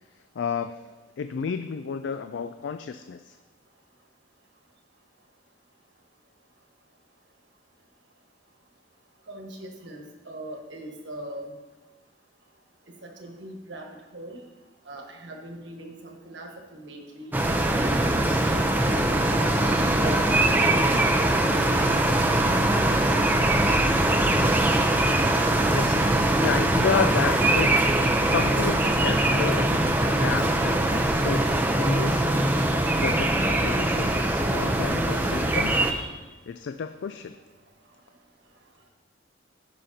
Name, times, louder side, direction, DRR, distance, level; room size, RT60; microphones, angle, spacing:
voice 1, 0.4-0.8 1.2-3.4 25.7-27.9 28.2-32.5 32.9-35.8 36.5-37.4, left 6 dB, 70° left, 9 dB, 0.3 m, -31 dB
voice 2, 9.3-11.5 13.0-13.9 14.1-14.4 14.9-17.4 17.8-18.1 18.4-19.6 20.0-21.6 21.9-22.2 30.9-31.1 35.9-36.1, right 1 dB, 65° right, 1 dB, 1.4 m, -40 dB
sound 1, 17.3-35.9, right 1 dB, 10° right, 0.5 m, -22 dB
15.5 x 5.7 x 2.8 m, 1.2 s
head